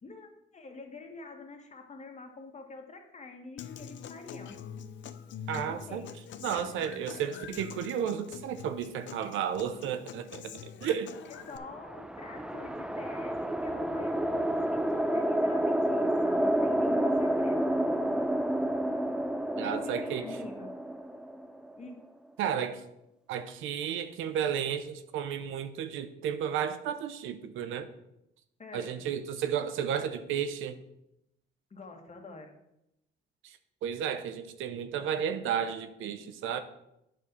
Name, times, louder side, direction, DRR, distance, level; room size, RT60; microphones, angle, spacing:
voice 1, 0.0-4.6 5.5-6.1 11.3-17.8 19.6-20.8 21.8-22.0 28.6-29.0 31.7-32.5, left 3 dB, 35° left, 3 dB, 1.8 m, -46 dB
Human voice / Acoustic guitar, 3.6-11.6, left 8 dB, 70° left, 0.7 m, -45 dB
voice 2, 5.5-6.0 6.4-11.1 19.6-20.2 22.4-22.8 23.3-27.9 28.7-30.8 33.4-36.6, right 8 dB, 90° right, 10 dB, 0.8 m, -33 dB
sound 1, 11.5-21.9, right 1 dB, 5° right, 0.5 m, -30 dB
9.1 x 4.6 x 6.8 m, 0.84 s
cardioid pair, 90°, 20 cm